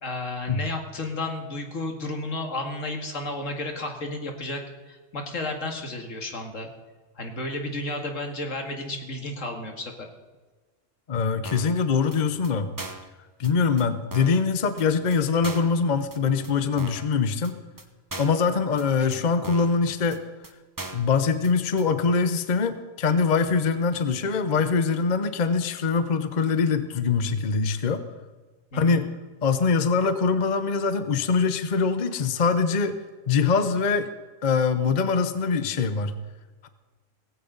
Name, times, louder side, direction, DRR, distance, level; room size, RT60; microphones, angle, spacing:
voice 1, 0.0-6.7 7.2-10.1 19.0-19.2 28.7-29.0, left 2 dB, 75° left, 3 dB, 2.4 m, -32 dB
voice 2, 11.1-12.7 13.4-17.6 18.2-20.2 20.9-28.0 28.7-29.1 29.4-33.0 33.3-34.1 34.4-36.1 36.6-36.7, left 5 dB, 40° left, 10 dB, 0.9 m, -23 dB
sound 1, 11.4-11.8 12.1-12.2 12.4-12.5 12.8-13.1 13.4-13.5 13.8-13.9 14.1-14.4 14.8-14.9 15.1-15.2 15.4-15.8 16.1-16.2 16.4-16.5 16.8-17.1 17.4-17.5 17.8-17.9 18.1-18.4 18.8-18.9 19.1-19.2 19.4-19.8 20.1-20.2 20.4-20.5 20.8-21.1 21.4-21.5 21.8-21.9, right 2 dB, 15° right, 0.9 m, -38 dB
18.0 x 16.0 x 4.0 m, 1.3 s
omnidirectional pair, 1.3 m